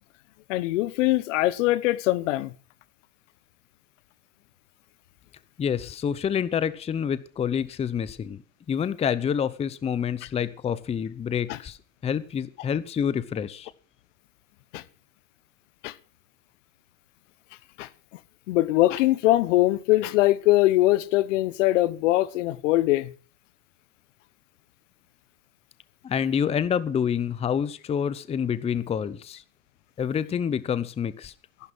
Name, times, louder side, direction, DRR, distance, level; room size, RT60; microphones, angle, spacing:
voice 1, 0.5-2.5 11.5-11.6 14.7-14.8 15.8-15.9 17.8-17.9 18.5-23.1, left 17 dB, 70° left, 1.1 m, -22 dB
voice 2, 5.6-8.4 8.7-11.8 12.0-13.7 26.0-29.4 30.0-31.3, left 8 dB, 15° left, 0.7 m, -27 dB
15.0 x 11.5 x 6.1 m
supercardioid pair, 130°, 38 cm